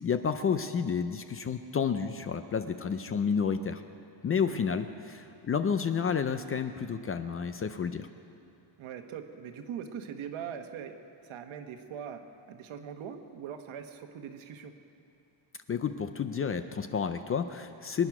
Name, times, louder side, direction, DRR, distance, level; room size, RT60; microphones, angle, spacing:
voice 1, 0.0-3.8 4.2-8.1 15.7-18.1, left 6 dB, 30° left, 9 dB, 0.4 m, -30 dB
voice 2, 8.8-11.0 11.2-12.2 12.5-14.7, right 8 dB, 75° right, 6 dB, 1.3 m, -41 dB
23.5 x 10.0 x 6.0 m, 2.8 s
cardioid pair, 175°, 48 cm